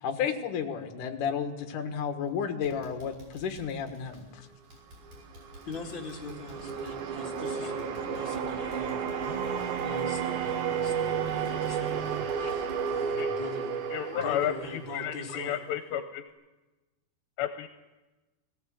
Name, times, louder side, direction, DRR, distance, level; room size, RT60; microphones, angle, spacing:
voice 1, 0.0-4.4, left 7 dB, 60° left, 5 dB, 2.7 m, -32 dB
sound 1, 2.0-2.3 2.6-14.2 14.5-14.7 15.1-15.2, equal, 40° right, 6.1 m, -51 dB
sound 2, 5.1-15.4, right 6 dB, 70° right, 2.0 m, -32 dB
voice 2, 5.7-13.8 14.1-15.6, left 3 dB, 35° left, -1 dB, 2.5 m, -42 dB
Telephone, 9.2-12.4, right 13 dB, 85° right, 3.3 m, -40 dB
voice 3, 13.9-16.2 17.4-17.7, left 10 dB, 80° left, 8 dB, 3.0 m, -32 dB
19.5 x 18.0 x 7.7 m, 1.1 s
omnidirectional pair, 5.0 m